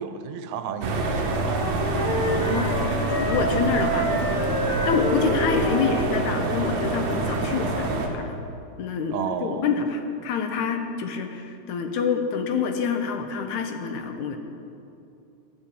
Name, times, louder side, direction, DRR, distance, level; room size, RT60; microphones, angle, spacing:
voice 1, 0.0-1.6 9.1-9.7, right 6 dB, 85° right, 9 dB, 2.0 m, -32 dB
sound 1, 0.8-8.1, right 2 dB, 60° right, 1.3 m, -26 dB
Wind instrument woodwind instrument, 1.0-6.3, equal, 35° left, 1.5 m, -29 dB
voice 2, 2.2-4.3 4.9-8.4 8.8-9.2 9.4-14.4, left 5 dB, 85° left, 5 dB, 2.3 m, -27 dB
10.5 x 7.6 x 8.3 m, 2.6 s
omnidirectional pair, 3.3 m